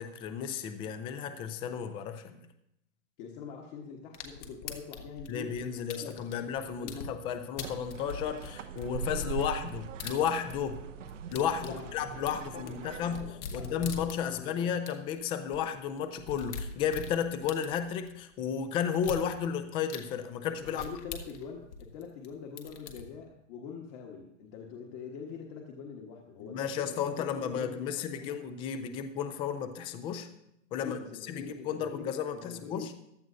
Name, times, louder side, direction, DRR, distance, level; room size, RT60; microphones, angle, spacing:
voice 1, 0.0-2.4 5.3-10.8 11.3-13.3 13.5-20.8 26.4-30.3 30.7-31.0 31.3-32.9, left 8 dB, 15° left, 10 dB, 0.4 m, -33 dB
voice 2, 3.2-6.1 6.8-7.1 11.6-11.9 12.2-14.8 20.6-28.4 30.8-32.1 32.4-32.9, left 6 dB, 40° left, 0 dB, 1.4 m, -44 dB
sound 1, 4.1-7.1 7.6-10.8 11.1-14.5 14.9-15.0 15.2-15.3 15.5-15.6 16.0-18.1 18.9-19.2 19.9-20.0 20.6-22.3 22.6-23.0, left 5 dB, 65° left, 1.6 m, -42 dB
sound 2, 7.6-13.2, right 6 dB, 70° right, 0.9 m, -42 dB
15.5 x 11.0 x 2.6 m, 0.77 s
hypercardioid pair, 125°, 38 cm